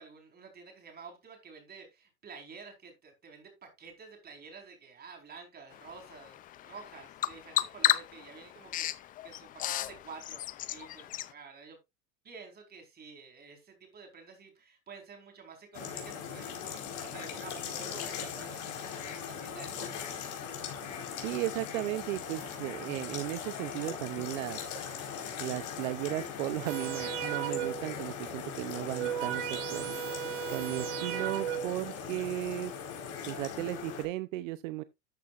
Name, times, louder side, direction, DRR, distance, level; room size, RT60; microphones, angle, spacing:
voice 1, 0.0-10.4 10.7-11.8 12.2-20.1, right 5 dB, 25° right, 4.4 m, -50 dB
Bird vocalization bird call bird song, 5.7-11.3, left 13 dB, 20° left, 0.4 m, -34 dB
sound 1, 15.7-34.0, left 7 dB, 45° left, 4.5 m, -40 dB
voice 2, 21.2-24.6 25.4-30.0 30.5-32.7 33.3-34.8, right 17 dB, 70° right, 0.7 m, -35 dB
sound 2, 26.7-28.0 28.7-31.9 32.6-32.7, right 11 dB, 50° right, 2.4 m, -36 dB
13.0 x 8.2 x 2.5 m
supercardioid pair, 130°, 40 cm